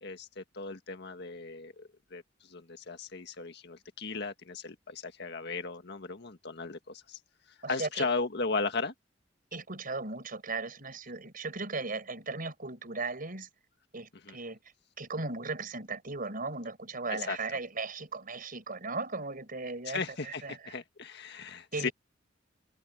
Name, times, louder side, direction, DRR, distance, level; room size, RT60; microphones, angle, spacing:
voice 1, 0.0-2.2 2.5-7.2 7.7-8.9 14.3-14.4 17.1-17.4 19.9-21.9, left 4 dB, 60° left, 1.7 m, -36 dB
voice 2, 7.6-8.1 9.5-13.5 13.9-14.6 15.0-20.7 21.7-21.9, right 3 dB, 50° right, 5.2 m, -37 dB
head